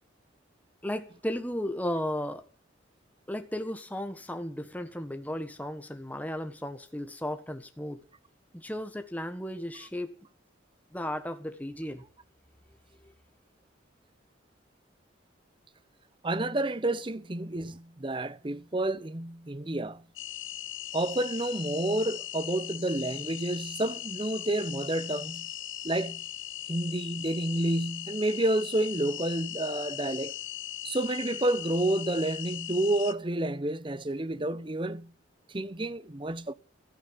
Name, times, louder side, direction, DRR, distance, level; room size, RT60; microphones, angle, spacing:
voice 1, 0.8-2.4 3.3-8.0 8.5-10.3 10.9-12.0 13.0-13.1, left 1 dB, 10° left, 1.4 m, -35 dB
voice 2, 16.2-20.0 20.9-25.5 25.8-26.2 26.7-30.3 30.8-35.1 35.5-36.5, right 1 dB, 25° right, 0.7 m, -30 dB
sound 1, 20.2-33.1, left 13 dB, 75° left, 1.0 m, -39 dB
14.5 x 9.6 x 9.1 m
head